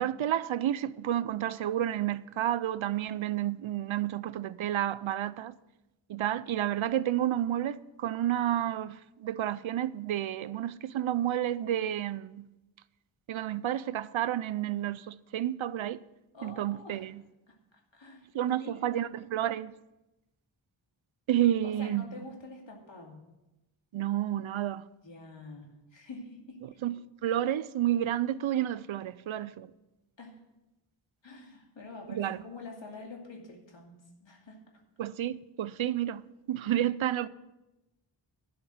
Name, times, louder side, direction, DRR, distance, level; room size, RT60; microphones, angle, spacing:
voice 1, 0.0-5.5 6.1-12.5 13.3-16.0 16.4-17.2 18.3-19.7 21.3-22.0 23.9-24.9 26.8-29.7 32.1-32.4 35.0-37.3, right 12 dB, 80° right, 0.5 m, -30 dB
voice 2, 16.3-17.1 17.5-19.0 21.3-23.2 25.0-26.6 30.2-30.4 31.2-34.6, left 3 dB, 65° left, 2.6 m, -47 dB
11.5 x 5.1 x 7.8 m
wide cardioid pair, 60°, 47 cm